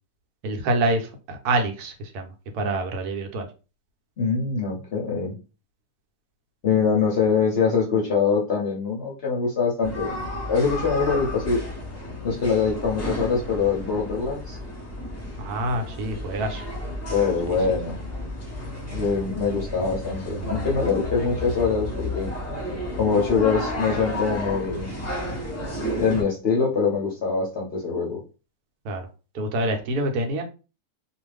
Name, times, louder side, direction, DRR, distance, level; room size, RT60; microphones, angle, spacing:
voice 1, 0.4-2.3 2.5-3.5 15.4-16.6 17.5-17.6 28.8-29.1 29.3-30.4, right 2 dB, 80° right, 5 dB, 1.1 m, -26 dB
voice 2, 4.2-5.4 6.6-10.2 10.5-11.6 12.2-14.6 17.1-18.0 18.9-22.3 22.9-24.9 26.0-28.2, left 5 dB, 55° left, -2 dB, 0.7 m, -23 dB
sound 1, 9.8-26.2, left 1 dB, 15° left, 0.5 m, -32 dB
2.5 x 2.4 x 3.2 m, 0.32 s
omnidirectional pair, 1.7 m